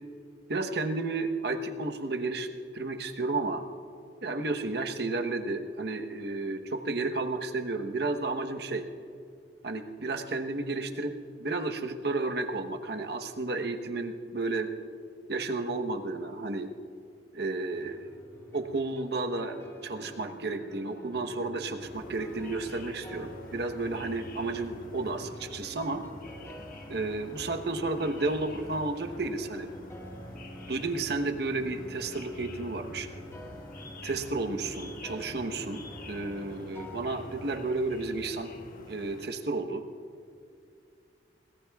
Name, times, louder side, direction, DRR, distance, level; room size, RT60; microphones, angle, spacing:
voice 1, 0.5-3.6 4.2-8.8 9.6-11.1 11.4-14.7 15.3-16.7 17.3-18.1 18.5-19.6 19.8-26.0 26.9-29.7 30.7-33.1 34.0-38.5 38.9-39.8, right 3 dB, 60° right, 5 dB, 1.0 m, -32 dB
sound 1, 17.7-37.5, equal, 15° left, 1.6 m, -47 dB
sound 2, 21.8-39.3, left 2 dB, 50° left, 1.4 m, -48 dB
26.0 x 19.0 x 2.4 m, 2.4 s
head